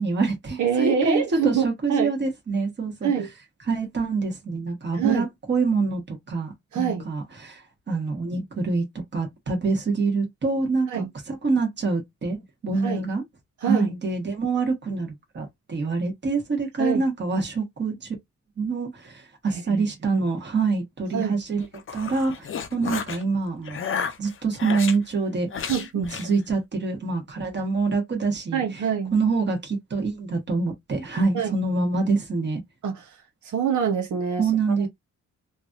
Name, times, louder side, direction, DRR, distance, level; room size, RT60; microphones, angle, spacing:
voice 1, 0.0-3.1 3.7-8.8 9.1-13.2 13.6-18.1 18.6-21.7 21.9-23.8 24.2-28.8 29.1-32.6 34.4-34.9, right 4 dB, 40° right, 1.3 m, -26 dB
voice 2, 0.6-2.1 3.0-3.3 4.9-5.3 6.7-7.1 10.9-11.1 12.8-13.0 13.6-13.9 16.8-17.0 19.5-19.8 20.1-20.2 21.1-21.4 25.7-26.1 28.5-29.2 31.3-31.5 32.8-33.2 33.4-34.9, right 7 dB, 85° right, 0.8 m, -25 dB
sound 1, 21.6-23.2 23.7-25.0 25.5-26.3, left 7 dB, 45° left, 0.5 m, -32 dB
3.2 x 2.6 x 2.4 m
wide cardioid pair, 155°, 29 cm